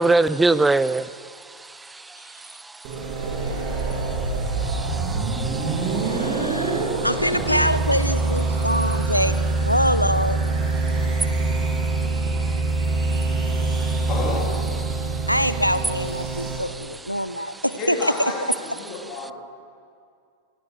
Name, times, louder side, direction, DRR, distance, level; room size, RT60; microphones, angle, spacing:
voice 1, 0.0-7.1 7.5-7.6 8.5-8.6 10.8-14.1 14.9-15.3 16.3-16.9, right 3 dB, 10° right, 0.3 m, -28 dB
sound 1, 2.8-16.6, right 3 dB, 45° right, 3.6 m, -24 dB
voice 2, 6.0-10.4 15.3-18.3, equal, 90° left, 0.5 m, -24 dB
voice 3, 14.1-14.5 17.8-19.3, left 3 dB, 35° left, 3.6 m, -30 dB
18.5 x 16.0 x 4.9 m
figure-of-eight pair, 90°, 0 cm